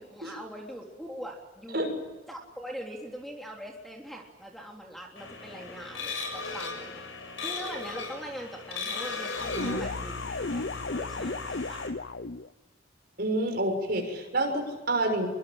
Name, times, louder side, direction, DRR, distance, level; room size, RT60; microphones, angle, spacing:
voice 1, 0.0-1.8 2.3-7.1 7.4-10.6 10.9-11.8, equal, ahead, 0 dB, 3.5 m, -42 dB
sound 1, 5.2-11.9, left 4 dB, 85° left, 7.1 m, -38 dB
sound 2, 9.3-12.5, left 3 dB, 55° left, 0.8 m, -34 dB
voice 2, 13.2-15.3, right 1 dB, 50° right, 4 dB, 6.5 m, -28 dB
26.0 x 24.0 x 8.9 m, 1.2 s
head